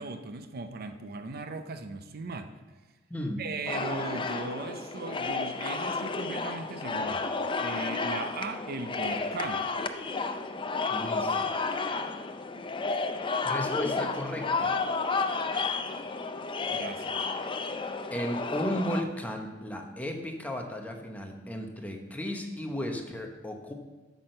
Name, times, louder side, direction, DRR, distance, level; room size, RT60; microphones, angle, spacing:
voice 1, 0.0-2.5 3.4-7.3 7.6-9.7 16.7-17.2, right 3 dB, 50° right, 8 dB, 0.5 m, -38 dB
voice 2, 3.1-3.4 10.9-11.5 13.4-14.8 18.1-23.7, equal, 10° left, 2 dB, 1.0 m, -35 dB
sound 1, 3.7-19.0, left 4 dB, 25° left, 0.5 m, -32 dB
8.6 x 6.1 x 6.4 m, 1.2 s
head